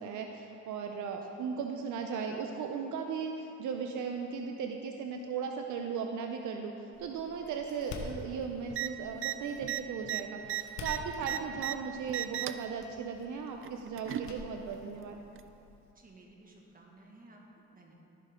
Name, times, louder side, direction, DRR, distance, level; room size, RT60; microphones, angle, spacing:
voice 1, 0.0-6.7 7.0-15.2, right 6 dB, 75° right, 3 dB, 0.7 m, -37 dB
Door, 6.9-15.9, left 3 dB, 65° left, 1.2 m, -49 dB
sound 1, 8.7-8.9 9.2-9.3 9.6-11.7 12.1-12.6 13.6-14.3 15.4-15.5, right 12 dB, 45° right, 0.4 m, -35 dB
voice 2, 11.2-11.5 15.9-17.9, right 2 dB, 30° right, -1 dB, 1.7 m, -57 dB
14.5 x 6.6 x 3.6 m, 2.8 s
cardioid pair, 90°, 30 cm